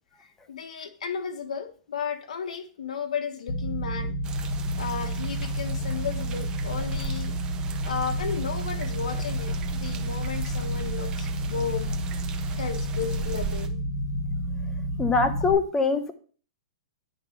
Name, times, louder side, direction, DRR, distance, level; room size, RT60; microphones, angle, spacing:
voice 1, 0.2-4.1 4.8-7.3 7.8-12.0 12.6-13.8, left 7 dB, 85° left, 1.3 m, -34 dB
sound 1, 3.5-15.5, equal, 50° left, 4.6 m, -30 dB
sound 2, 4.2-13.7, right 8 dB, 20° right, 0.8 m, -40 dB
voice 2, 15.0-16.1, left 4 dB, 15° left, 1.0 m, -23 dB
9.6 x 3.7 x 5.8 m
hypercardioid pair, 140°, 4 cm